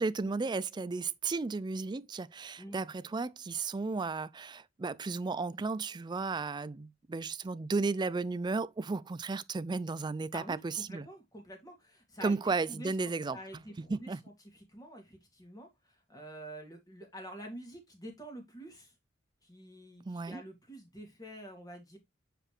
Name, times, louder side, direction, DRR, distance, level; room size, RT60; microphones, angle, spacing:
voice 1, 0.0-11.1 12.2-13.6 13.9-14.2 20.1-20.4, right 3 dB, 20° right, 0.3 m, -34 dB
voice 2, 10.3-12.4 12.7-12.9 13.3-14.1 14.5-15.7 16.1-18.9 19.4-22.0, right 1 dB, 20° left, 2.4 m, -47 dB
7.8 x 4.9 x 3.2 m
head